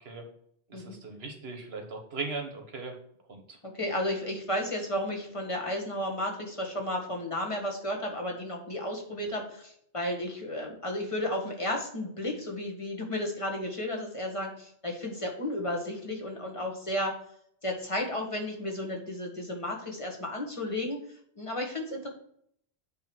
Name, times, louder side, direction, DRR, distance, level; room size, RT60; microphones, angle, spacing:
voice 1, 0.7-2.9 3.3-3.6, right 3 dB, 80° right, 3 dB, 1.7 m, -38 dB
voice 2, 3.7-17.1 17.6-21.0 21.4-22.1, left 1 dB, 30° left, 0 dB, 1.5 m, -33 dB
8.4 x 3.3 x 6.1 m, 0.67 s
omnidirectional pair, 1.0 m